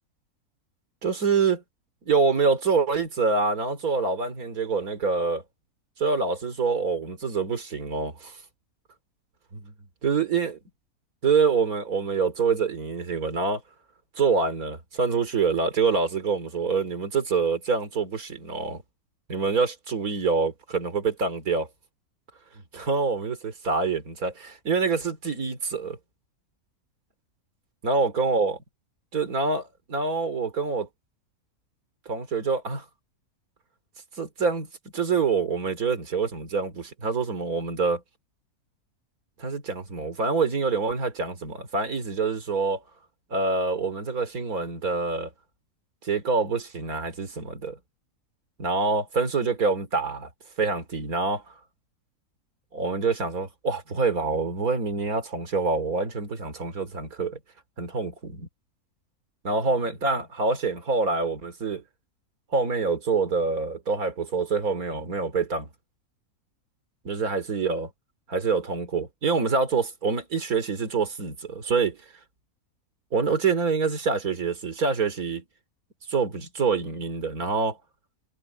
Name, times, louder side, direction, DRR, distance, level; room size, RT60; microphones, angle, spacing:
voice 1, 1.0-1.6 2.0-5.4 6.0-8.4 9.5-9.7 10.0-10.5 11.2-13.6 14.2-18.8 19.3-21.7 22.7-26.0 27.8-28.6 29.1-30.9 32.0-32.8 34.2-34.7 34.9-38.0 39.4-42.8 43.3-45.3 46.0-47.8 48.6-50.3 50.6-51.4 52.7-57.4 57.8-58.5 59.4-61.8 62.5-65.7 67.0-67.9 68.3-72.0 73.1-75.4 76.1-77.8, right 4 dB, 75° right, 3.4 m, -26 dB
omnidirectional pair, 1.6 m